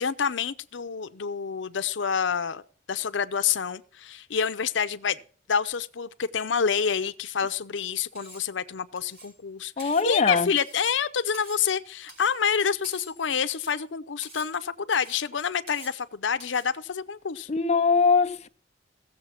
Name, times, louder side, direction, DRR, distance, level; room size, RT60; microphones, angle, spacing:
voice 1, 0.0-2.6 2.9-5.2 5.5-17.5, left 6 dB, 90° left, 0.7 m, -28 dB
Cutlery silverware, 8.1-8.5 9.0-9.4 9.8-10.1 10.6-10.9 11.3-11.7 12.1-12.4 12.8-13.2 13.5-13.8 14.2-14.5 14.9-15.2 15.7-16.0 16.4-16.7, right 1 dB, 55° right, 5.7 m, -47 dB
voice 2, 9.8-10.5 17.5-18.5, left 4 dB, 35° left, 0.7 m, -22 dB
16.0 x 7.3 x 5.8 m
head